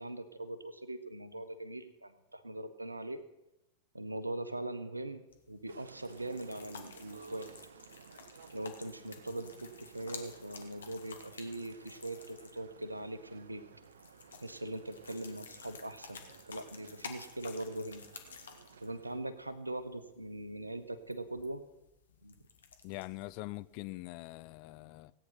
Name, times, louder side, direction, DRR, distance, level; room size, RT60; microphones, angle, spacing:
voice 1, 0.0-3.2 3.9-7.5 8.5-13.7 14.4-18.0 18.8-21.6 22.2-22.3, right 1 dB, 85° right, 1.0 m, -41 dB
sound 1, 5.3-23.8, left 6 dB, 70° left, 1.7 m, -53 dB
sound 2, 5.7-19.2, right 6 dB, 65° right, 0.7 m, -57 dB
voice 2, 22.8-25.1, left 19 dB, 45° left, 0.5 m, -43 dB
17.0 x 9.2 x 5.9 m
figure-of-eight pair, 90°, 0 cm